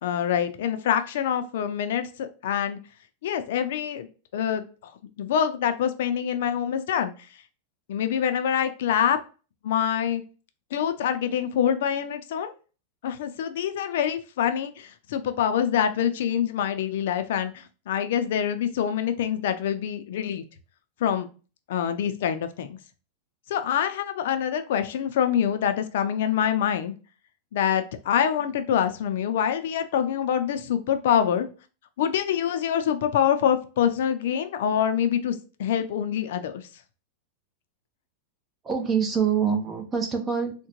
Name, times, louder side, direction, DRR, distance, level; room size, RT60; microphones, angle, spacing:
voice 1, 0.0-2.8 3.2-4.1 4.3-4.9 5.2-7.1 7.9-9.2 9.6-10.2 10.7-12.5 13.0-20.4 21.0-21.3 21.7-22.8 23.5-26.9 27.5-31.5 32.0-36.6, left 9 dB, 70° left, 9 dB, 0.5 m, -25 dB
voice 2, 38.6-40.7, right 6 dB, 20° right, 4 dB, 0.7 m, -25 dB
3.6 x 2.2 x 2.9 m, 0.35 s
supercardioid pair, 140°, 0 cm